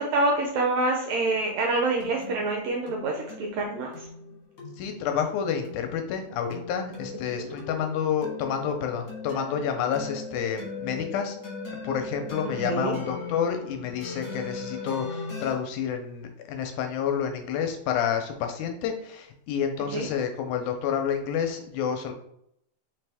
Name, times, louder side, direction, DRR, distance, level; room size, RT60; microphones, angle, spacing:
voice 1, 0.0-4.1 7.4-7.5 12.6-13.0 19.9-20.1, right 2 dB, 80° right, 0 dB, 1.6 m, -26 dB
sound 1, 1.3-15.5, left 4 dB, 50° left, 1.6 m, -39 dB
voice 2, 4.8-11.4 11.8-22.1, left 7 dB, 80° left, 5 dB, 1.9 m, -29 dB
4.6 x 3.4 x 3.3 m, 0.73 s
omnidirectional pair, 3.7 m